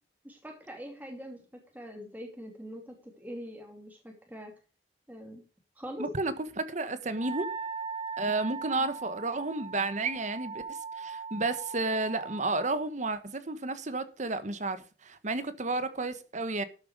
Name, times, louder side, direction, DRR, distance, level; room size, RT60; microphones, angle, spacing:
voice 1, 0.2-1.4 1.7-4.5 5.1-5.4 5.8-6.1 8.8-8.9, equal, 10° right, 2.7 m, -43 dB
voice 2, 6.0-7.5 8.2-16.6, right 3 dB, 45° right, 1.3 m, -32 dB
Wind instrument woodwind instrument, 7.1-12.7, right 5 dB, 30° right, 0.4 m, -39 dB
12.5 x 8.0 x 4.9 m
head